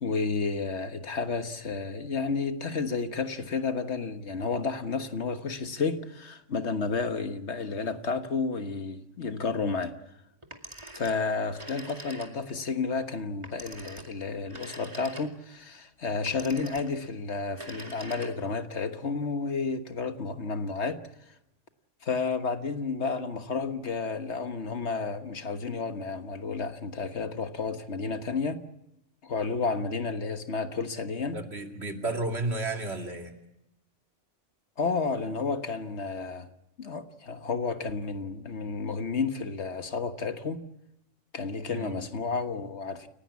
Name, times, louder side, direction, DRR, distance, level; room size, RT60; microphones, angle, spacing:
voice 1, 0.0-10.0 10.9-21.1 22.0-28.6 29.2-31.4 34.8-36.5 36.8-40.6 41.3-43.1, left 4 dB, 65° left, 1.6 m, -31 dB
Telephone, 10.4-12.6 13.4-15.6 16.3-17.1 17.5-18.6, right 1 dB, 25° right, 2.3 m, -44 dB
voice 2, 31.3-33.3 41.7-42.0, right 2 dB, 60° right, 2.8 m, -32 dB
29.5 x 16.5 x 8.3 m
omnidirectional pair, 1.3 m